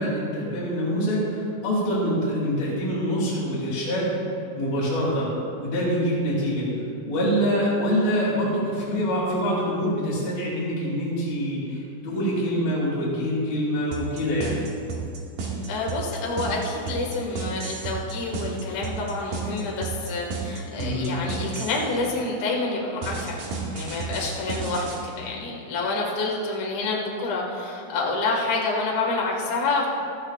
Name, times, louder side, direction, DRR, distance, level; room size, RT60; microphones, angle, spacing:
voice 1, 0.0-4.2 4.5-5.3 5.6-6.7 7.0-14.5 20.8-21.2, equal, 75° left, -8 dB, 4.2 m, -25 dB
sound 1, 13.9-21.9 23.0-25.0, right 5 dB, 65° right, 3.3 m, -32 dB
voice 2, 15.7-29.9, left 3 dB, 55° left, -3 dB, 2.8 m, -28 dB
17.5 x 13.5 x 2.4 m, 2.5 s
omnidirectional pair, 4.3 m